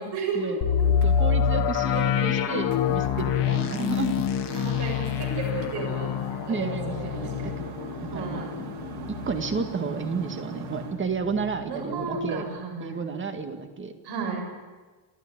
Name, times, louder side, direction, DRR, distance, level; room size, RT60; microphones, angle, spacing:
voice 1, 0.0-0.9 1.9-2.5 3.5-3.9 4.5-7.7 8.1-8.6 11.7-13.0 14.0-14.4, right 4 dB, 55° right, 2 dB, 7.1 m, -34 dB
sound 1, 0.6-10.3 10.7-10.8 11.3-11.5, left 8 dB, 60° left, 2.0 m, -26 dB
sound 2, 0.8-11.0, right 6 dB, 75° right, 3.7 m, -42 dB
voice 2, 1.0-4.1 6.5-7.4 8.1-8.5 9.3-12.4 12.8-13.9, right 5 dB, 25° right, 7 dB, 2.0 m, -31 dB
sound 3, 4.1-13.2, left 16 dB, 25° left, 2.5 m, -46 dB
30.0 x 13.5 x 9.9 m, 1.3 s
cardioid pair, 170°, 47 cm